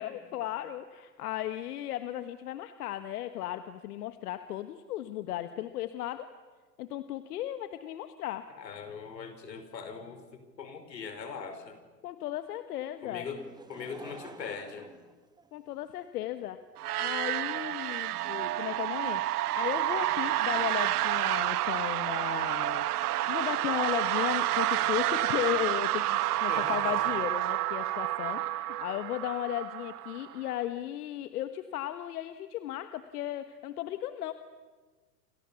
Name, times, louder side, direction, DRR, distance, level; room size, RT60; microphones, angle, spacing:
voice 1, 0.0-6.3 6.8-8.5 12.0-13.3 15.5-16.6 17.0-19.2 19.5-34.3, left 13 dB, 65° left, 10 dB, 1.5 m, -35 dB
voice 2, 8.5-11.8 13.0-13.4 13.7-14.9 20.5-20.6 26.5-27.1, left 5 dB, 85° left, 8 dB, 5.3 m, -41 dB
Laughter / Crowd, 13.4-16.0 16.7-16.8, right 3 dB, 10° right, 1.4 m, -50 dB
sound 1, 16.8-30.5, right 15 dB, 65° right, 1.1 m, -29 dB
28.5 x 27.5 x 7.1 m, 1.3 s
hypercardioid pair, 115°, 49 cm